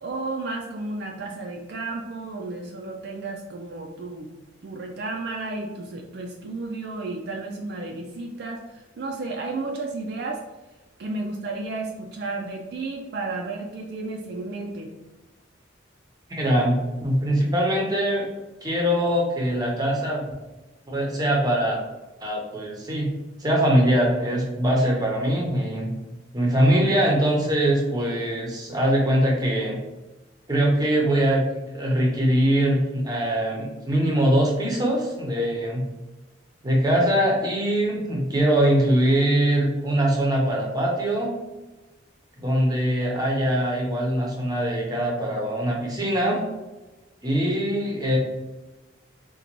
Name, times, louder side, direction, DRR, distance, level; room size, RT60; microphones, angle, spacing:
voice 1, 0.0-4.3 4.6-10.4 11.0-14.9, right 3 dB, 55° right, 1 dB, 0.3 m, -32 dB
voice 2, 16.3-18.2 18.6-20.2 20.9-21.8 22.2-23.1 23.4-25.9 26.3-29.8 30.5-31.4 31.7-35.9 36.6-41.3 42.4-46.4 47.2-48.2, right 1 dB, 20° right, -1 dB, 0.6 m, -22 dB
3.8 x 2.2 x 2.9 m, 1.1 s
head